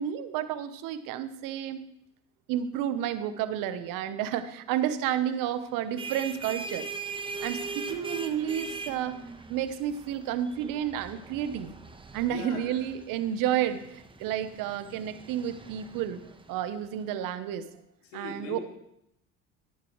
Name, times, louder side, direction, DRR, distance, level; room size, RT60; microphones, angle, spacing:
voice 1, 0.0-1.9 2.5-6.9 7.4-9.2 9.5-11.8 12.1-16.2 16.5-17.7 18.1-18.6, right 10 dB, 70° right, 12 dB, 1.0 m, -31 dB
sound 1, 5.7-17.0, right 4 dB, 15° right, 1.1 m, -41 dB
voice 2, 12.3-12.9 13.4-13.5 18.0-18.6, left 6 dB, 85° left, 2 dB, 2.3 m, -40 dB
13.5 x 10.5 x 3.2 m, 0.79 s
hypercardioid pair, 75°, 35 cm